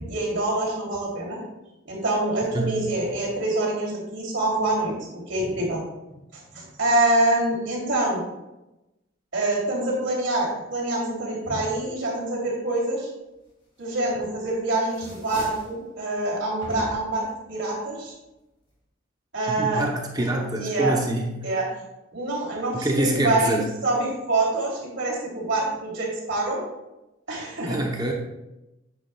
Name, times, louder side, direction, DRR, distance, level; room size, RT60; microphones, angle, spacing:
voice 1, 0.1-1.4 1.8-5.8 6.5-8.2 9.3-13.1 13.8-18.1 19.3-19.9 20.2-21.0 21.4-21.7 22.1-26.6 27.3-27.8, right 2 dB, 60° right, -4 dB, 3.0 m, -26 dB
sound 1, 14.0-14.5 14.8-15.8 16.6-17.3, equal, 25° left, 2.5 m, -40 dB
voice 2, 19.5-21.4 22.7-23.7 27.7-28.1, right 1 dB, 20° right, 1 dB, 0.8 m, -26 dB
9.0 x 8.6 x 2.3 m, 0.97 s
head